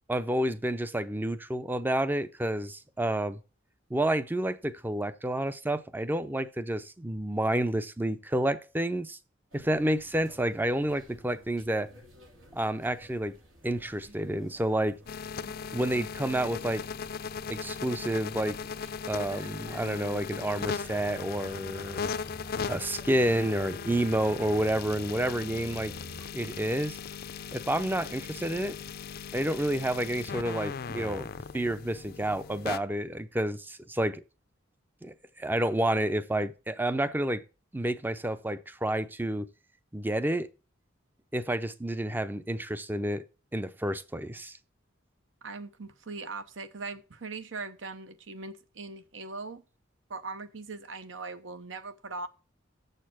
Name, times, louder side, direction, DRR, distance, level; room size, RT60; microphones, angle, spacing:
voice 1, 0.0-3.4 3.9-9.2 9.5-11.9 12.5-13.3 13.6-15.0 15.7-16.8 17.5-18.6 19.1-22.1 22.7-25.9 26.3-27.0 27.5-28.7 29.3-31.3 31.5-34.2 35.0-37.4 37.7-39.5 39.9-40.5 41.3-43.2 43.5-44.6, right 1 dB, 10° right, 0.5 m, -29 dB
sound 1, 9.5-26.3, right 1 dB, 90° right, 3.1 m, -52 dB
sound 2, 15.1-32.8, left 6 dB, 50° left, 0.5 m, -38 dB
voice 2, 45.4-49.6 50.1-52.3, right 3 dB, 70° right, 0.9 m, -40 dB
7.3 x 6.7 x 6.0 m
head